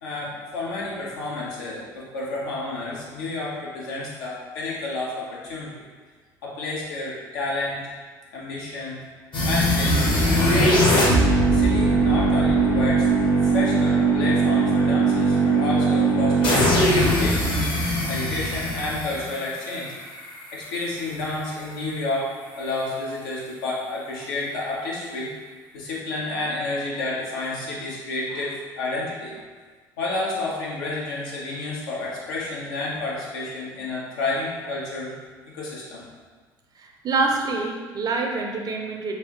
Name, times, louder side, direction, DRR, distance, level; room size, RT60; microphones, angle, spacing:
voice 1, 0.0-5.8 6.4-7.8 8.3-9.0 9.4-10.8 11.4-17.5 18.1-19.9 20.5-25.3 25.7-29.4 30.0-35.1 35.5-36.0, left 2 dB, 70° left, -5 dB, 0.8 m, -30 dB
sound 1, 9.3-20.3, right 2 dB, 40° left, 0.9 m, -20 dB
voice 2, 36.8-39.1, right 3 dB, 30° right, 1 dB, 0.5 m, -26 dB
3.2 x 2.6 x 2.9 m, 1.5 s
figure-of-eight pair, 55°, 12 cm